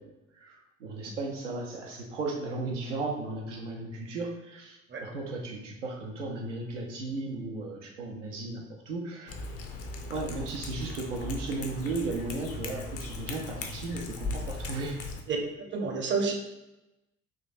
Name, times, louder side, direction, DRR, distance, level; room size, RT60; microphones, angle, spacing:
voice 1, 0.0-9.4 10.1-15.0, right 3 dB, 80° right, -1 dB, 0.7 m, -35 dB
Cat, 9.3-15.2, left 3 dB, 40° left, 0.6 m, -38 dB
voice 2, 15.7-16.3, right 5 dB, 30° right, 2 dB, 0.7 m, -29 dB
3.8 x 2.6 x 2.5 m, 0.97 s
figure-of-eight pair, 55°, 36 cm